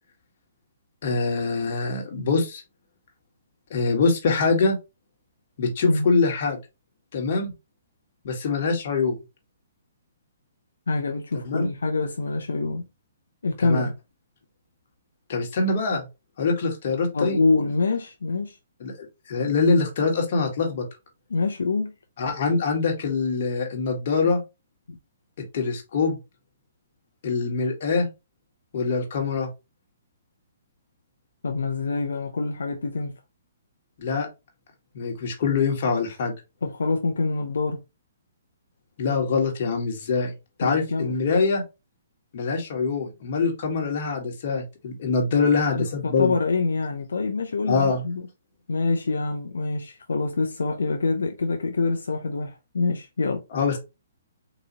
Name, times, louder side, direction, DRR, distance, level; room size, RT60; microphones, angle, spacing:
voice 1, 1.0-2.6 3.7-4.8 5.6-6.6 7.1-7.5 8.2-9.2 11.3-11.7 13.6-13.9 15.3-16.1 16.4-17.4 18.8-20.9 22.2-24.4 25.5-26.2 27.2-28.1 28.7-29.5 34.0-34.3 34.9-36.3 39.0-40.3 40.6-41.6 42.3-46.4 47.7-48.0 53.5-53.8, left 4 dB, 55° left, 1.5 m, -24 dB
voice 2, 10.9-12.8 13.4-13.9 17.1-18.6 21.3-21.9 24.9-25.0 31.4-33.1 36.6-37.8 40.6-41.1 45.3-48.2 48.7-53.4, left 3 dB, 90° left, 0.5 m, -26 dB
4.0 x 2.7 x 2.9 m
hypercardioid pair, 145°, 0 cm